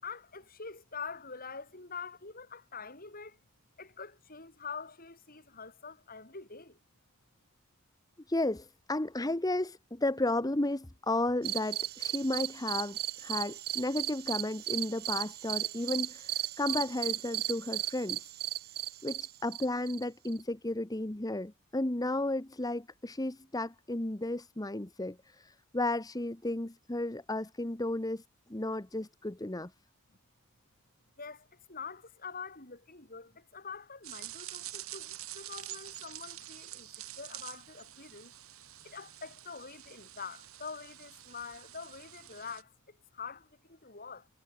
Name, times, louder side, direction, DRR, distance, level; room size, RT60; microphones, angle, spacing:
voice 1, 0.0-3.4 3.8-6.8 31.2-38.3 38.8-44.3, left 5 dB, 40° left, 7.1 m, -45 dB
voice 2, 8.3-18.3 19.0-28.2 28.5-29.7, left 2 dB, 15° left, 1.0 m, -33 dB
sound 1, 11.4-20.4, right 13 dB, 45° right, 0.8 m, -36 dB
sound 2, 34.0-42.6, right 14 dB, 70° right, 4.8 m, -47 dB
head